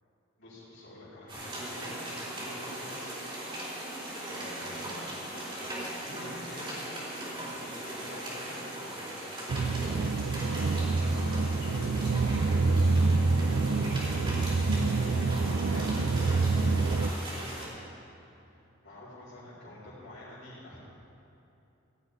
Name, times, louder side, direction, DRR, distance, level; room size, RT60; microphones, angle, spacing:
voice 1, 0.4-3.4 4.3-6.9 7.1-10.0 11.1-13.2 13.7-17.7 18.4-18.6 18.8-20.8, left 1 dB, 65° left, -13 dB, 4.4 m, -49 dB
sound 1, 1.3-17.7, right 1 dB, 25° right, 4.0 m, -39 dB
sound 2, 9.5-17.1, right 3 dB, 80° right, 0.5 m, -27 dB
17.0 x 6.4 x 9.6 m, 2.8 s
head